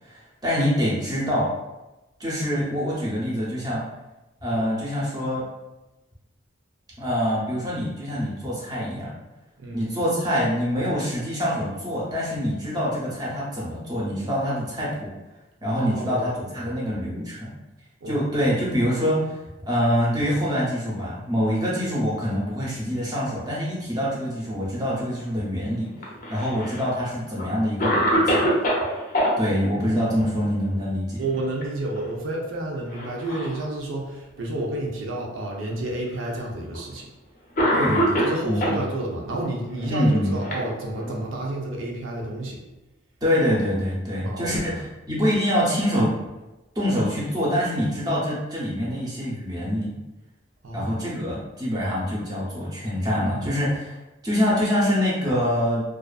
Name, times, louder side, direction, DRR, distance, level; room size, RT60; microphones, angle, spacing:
voice 1, 0.0-1.5 2.2-3.8 4.4-5.4 7.0-9.1 9.7-15.1 15.6-17.5 18.1-25.9 26.3-28.5 29.4-31.2 37.7-38.7 39.9-40.3 43.2-44.7 45.1-46.1 46.7-49.9 50.7-54.0 54.2-55.8, equal, 20° right, -6 dB, 0.6 m, -25 dB
voice 2, 15.8-16.8 18.0-18.3 31.2-37.1 38.2-42.6 44.2-44.8 50.6-51.4, right 1 dB, 90° right, -1 dB, 0.6 m, -31 dB
Cough, 26.0-26.9 27.4-27.5 27.8-29.3 31.2-31.6 32.0-32.1 32.9-33.6 34.4-34.5 35.5-35.6 36.7-36.9 37.6-38.8 39.8-41.2, equal, 45° left, 0.5 m, -24 dB
2.4 x 2.4 x 2.3 m, 1.0 s
head